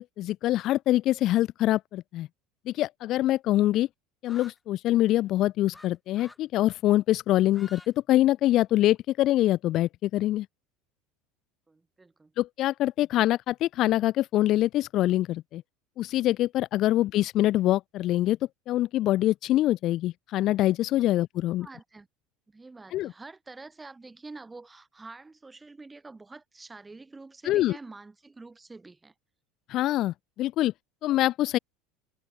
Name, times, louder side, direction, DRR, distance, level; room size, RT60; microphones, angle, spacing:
voice 1, 0.0-2.3 2.7-3.9 4.2-7.8 8.1-10.5 12.4-15.6 16.0-18.4 18.7-21.7 22.9-23.1 27.5-27.8 29.7-30.7 31.0-31.6, left 14 dB, 55° left, 0.5 m, -24 dB
sound 1, 4.2-4.6 5.7-5.9 6.1-6.4 7.4-7.9 8.2-9.0, left 2 dB, 10° left, 3.6 m, -50 dB
voice 2, 11.7-12.3 21.2-21.3 21.6-22.1 22.5-29.1, right 3 dB, 15° right, 6.3 m, -47 dB
hypercardioid pair, 80°, 0 cm